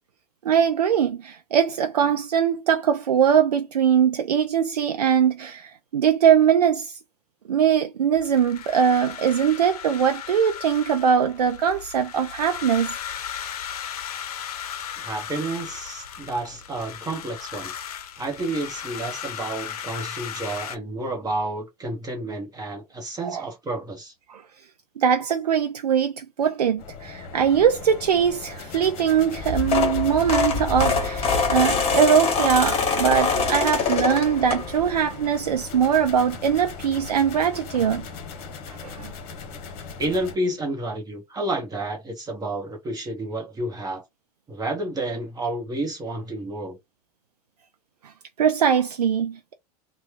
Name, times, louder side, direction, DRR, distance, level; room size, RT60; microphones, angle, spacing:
voice 1, 0.4-7.0 7.5-13.0 23.2-23.5 24.3-24.4 25.0-38.1 38.7-39.1 48.0-48.1 48.4-49.5, right 8 dB, 85° right, 0.4 m, -21 dB
sound 1, 8.2-20.8, left 9 dB, 70° left, 0.6 m, -36 dB
voice 2, 15.0-17.7 18.2-24.1 40.0-44.0 44.5-46.8, right 2 dB, 20° right, 1.0 m, -30 dB
sound 2, 26.8-40.4, left 5 dB, 45° left, 1.0 m, -39 dB
sound 3, 29.4-35.0 35.5-35.7 37.0-37.1 37.3-37.4 37.7-37.9, left 4 dB, 30° left, 1.3 m, -24 dB
2.9 x 2.3 x 3.3 m
hypercardioid pair, 90°, 20 cm